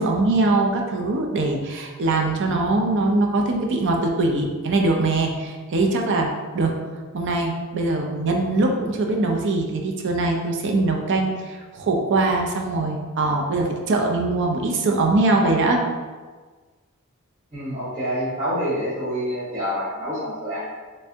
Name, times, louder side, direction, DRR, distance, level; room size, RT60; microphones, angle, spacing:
voice 1, 0.0-6.3 6.5-6.8 7.1-15.8, right 2 dB, 55° right, 2 dB, 0.5 m, -22 dB
voice 2, 17.5-20.8, equal, 40° right, -12 dB, 1.2 m, -27 dB
3.3 x 3.2 x 2.7 m, 1.4 s
head